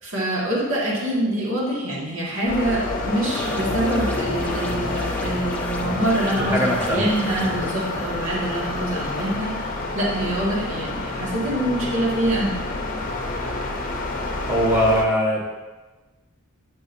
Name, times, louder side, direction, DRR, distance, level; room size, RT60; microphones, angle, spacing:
voice 1, 0.0-9.7 9.9-12.6, right 1 dB, 65° right, -5 dB, 1.7 m, -25 dB
sound 1, 2.5-15.0, left 2 dB, 40° left, 0.7 m, -28 dB
sound 2, 3.3-7.7, left 1 dB, 5° left, 0.4 m, -34 dB
voice 2, 6.4-7.0 14.5-15.6, equal, 10° right, -5 dB, 1.0 m, -21 dB
8.6 x 6.1 x 2.6 m, 1.2 s
head